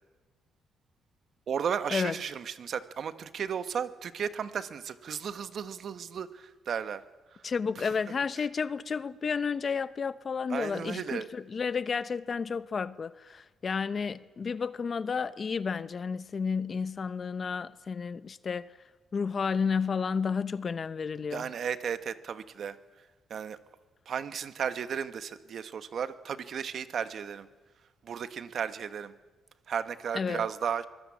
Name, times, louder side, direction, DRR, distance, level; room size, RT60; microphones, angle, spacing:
voice 1, 1.5-7.0 7.8-7.9 8.4-8.5 10.5-11.3 21.3-22.8 23.3-23.6 24.1-27.5 28.0-29.1 29.7-30.8, right 7 dB, 55° right, 1.3 m, -34 dB
voice 2, 7.4-18.7 19.1-21.5 30.1-30.5, left 5 dB, 40° left, 0.9 m, -31 dB
24.0 x 19.5 x 8.6 m
cardioid pair, 90°, 0 cm